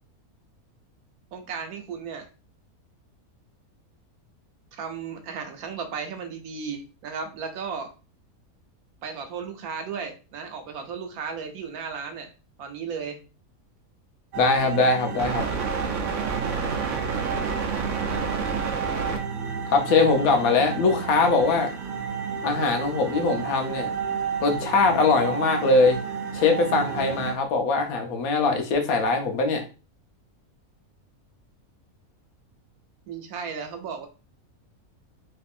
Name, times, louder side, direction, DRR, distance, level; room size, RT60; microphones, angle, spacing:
voice 1, 1.3-2.3 4.7-7.9 9.0-12.3 12.6-13.2 33.1-34.1, right 6 dB, 80° right, 6 dB, 1.2 m, -35 dB
sound 1, 14.3-27.3, right 6 dB, 60° right, 1.0 m, -30 dB
voice 2, 14.4-15.4 19.7-21.7 22.4-23.9 24.4-26.0 26.3-29.6, left 3 dB, 75° left, 4 dB, 1.2 m, -22 dB
3.5 x 3.3 x 2.4 m, 0.33 s
omnidirectional pair, 1.6 m